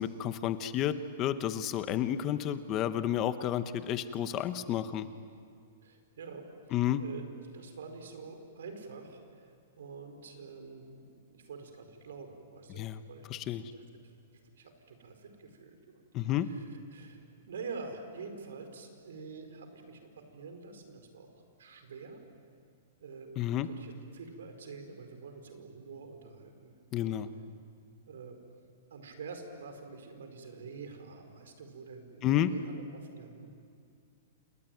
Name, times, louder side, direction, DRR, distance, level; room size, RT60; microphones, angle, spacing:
voice 1, 0.0-5.1 6.7-7.0 12.7-13.0 13.3-13.6 16.1-16.5 23.4-23.7 26.9-27.3 32.2-32.5, left 11 dB, 20° left, 12 dB, 0.7 m, -31 dB
voice 2, 5.8-7.2 7.5-13.2 13.6-17.2 17.5-21.3 21.6-22.2 23.0-23.3 23.6-27.2 28.0-28.4 28.9-33.5, right 4 dB, 85° right, 6 dB, 4.6 m, -47 dB
28.5 x 20.0 x 9.2 m, 2.4 s
hypercardioid pair, 180°, 0 cm